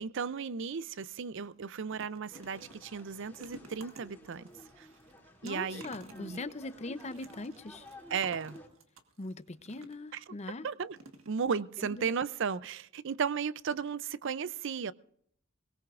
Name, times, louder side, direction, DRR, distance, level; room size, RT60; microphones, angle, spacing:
voice 1, 0.0-4.5 4.8-4.9 5.4-5.8 6.2-6.4 8.1-8.6 10.1-10.3 10.6-11.0 11.3-14.9, right 6 dB, 65° right, 0.5 m, -35 dB
sound 1, 0.9-1.1 1.4-10.2 10.9-11.7 12.1-12.2 12.5-12.6, right 2 dB, 85° right, 1.5 m, -54 dB
sound 2, 2.3-8.7, left 1 dB, 10° left, 2.7 m, -52 dB
voice 2, 5.4-7.9 9.2-10.7 11.9-12.2, left 2 dB, 35° left, 0.7 m, -41 dB
22.0 x 18.5 x 2.5 m
head